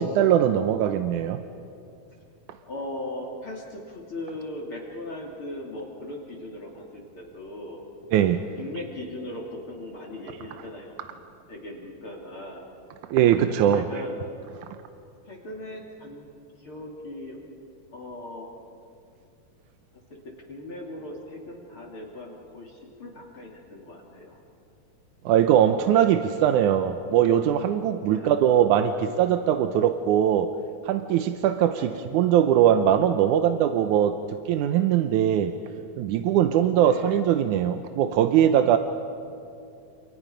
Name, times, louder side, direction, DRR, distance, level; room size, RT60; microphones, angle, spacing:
voice 1, 0.0-1.4 8.1-8.5 13.1-13.8 25.3-30.5 30.8-34.2 34.5-35.5 36.0-38.8, right 10 dB, 90° right, 8 dB, 2.3 m, -21 dB
voice 2, 2.7-7.8 8.5-10.9 11.5-12.7 13.3-14.1 15.3-16.3 16.6-17.4 17.9-18.6 20.5-24.4 28.0-28.3 31.7-32.0 36.7-37.1, left 1 dB, 45° left, -2 dB, 3.6 m, -38 dB
29.5 x 28.5 x 5.1 m, 2.5 s
omnidirectional pair, 3.4 m